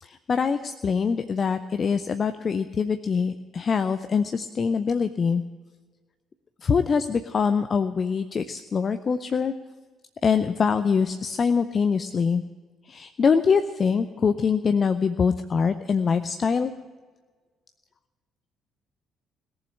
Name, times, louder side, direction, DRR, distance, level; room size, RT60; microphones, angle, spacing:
voice 1, 0.0-5.4 6.6-9.5 10.2-12.4 12.9-16.7, left 5 dB, 40° left, 10 dB, 0.6 m, -24 dB
17.5 x 7.2 x 9.9 m, 1.4 s
figure-of-eight pair, 45°, 0 cm